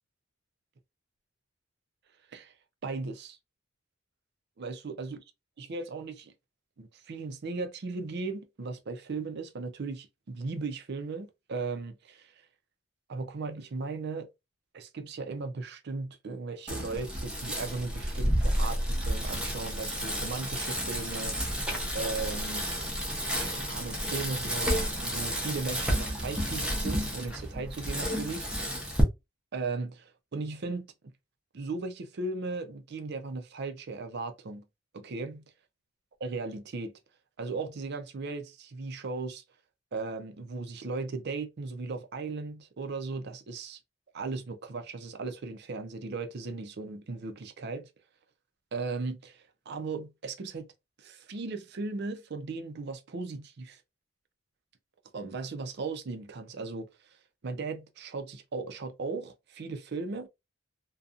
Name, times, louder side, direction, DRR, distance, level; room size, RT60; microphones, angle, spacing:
voice 1, 2.8-3.4 4.6-5.2 5.6-6.3 6.8-12.4 13.1-14.3 14.7-21.4 21.9-22.7 23.3-28.5 29.5-30.9 31.5-34.6 34.9-35.4 36.2-36.9 37.4-39.4 39.9-43.8 44.1-47.9 48.7-50.7 51.0-53.8 55.1-57.2 57.4-60.3, right 3 dB, 50° right, 0.5 m, -37 dB
Bicycle, 16.7-29.0, equal, 5° right, 0.6 m, -31 dB
2.6 x 2.3 x 2.4 m
head